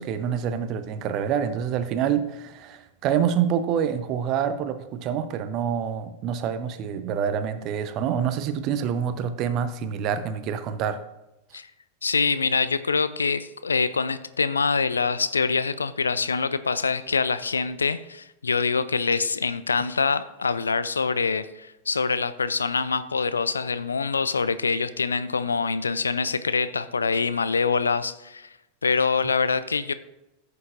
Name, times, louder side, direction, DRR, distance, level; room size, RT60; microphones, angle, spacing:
voice 1, 0.0-11.0, right 8 dB, 40° right, 11 dB, 0.8 m, -27 dB
voice 2, 12.0-28.5 28.8-29.9, left 4 dB, 80° left, 14 dB, 0.4 m, -25 dB
14.5 x 6.7 x 2.5 m, 0.94 s
figure-of-eight pair, 90°, 0 cm